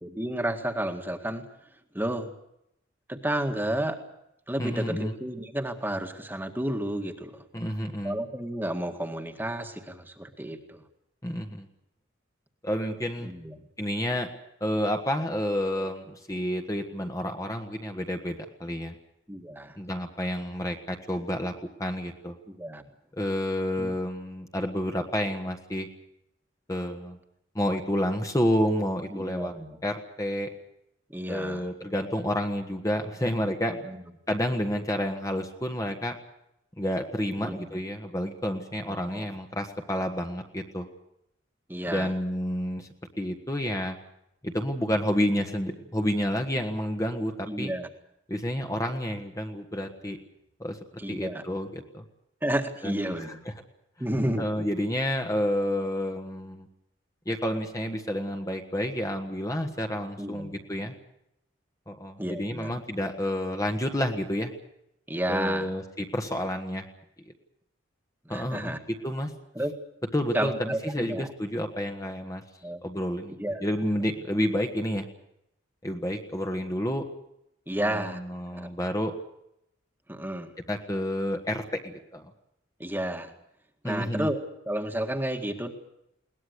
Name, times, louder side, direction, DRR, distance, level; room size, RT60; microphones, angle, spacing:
voice 1, 0.0-1.4 1.9-2.3 3.1-4.0 4.5-7.4 8.0-10.8 13.2-13.6 19.3-19.8 22.5-22.8 23.8-23.9 29.1-29.8 31.1-31.7 33.9-34.0 37.4-37.8 38.9-39.3 41.7-42.1 47.5-47.9 51.0-51.4 52.4-53.3 54.0-54.6 60.2-60.6 62.2-62.7 65.1-65.7 68.3-68.8 69.6-69.7 70.3-71.3 72.6-72.8 73.4-73.6 77.7-78.7 80.1-80.5 82.8-83.3 83.8-84.4 84.7-85.7, right 1 dB, 10° right, 5 dB, 1.9 m, -31 dB
voice 2, 4.6-5.1 7.5-8.2 11.2-11.7 12.6-13.3 13.8-14.3 14.6-18.9 19.8-22.4 23.1-25.9 26.7-27.2 27.5-29.5 29.8-30.5 31.3-33.8 34.3-36.2 36.8-40.9 41.9-42.9 43.2-44.0 44.4-47.7 48.3-50.2 50.6-50.8 51.1-52.0 52.8-53.5 54.4-56.7 57.2-60.9 61.9-64.5 65.3-66.9 68.3-69.3 70.1-72.4 72.8-75.1 75.8-77.1 77.8-79.1 80.7-82.2 83.8-84.3, equal, 15° left, 3 dB, 1.6 m, -30 dB
21.5 x 19.0 x 8.1 m, 0.81 s
head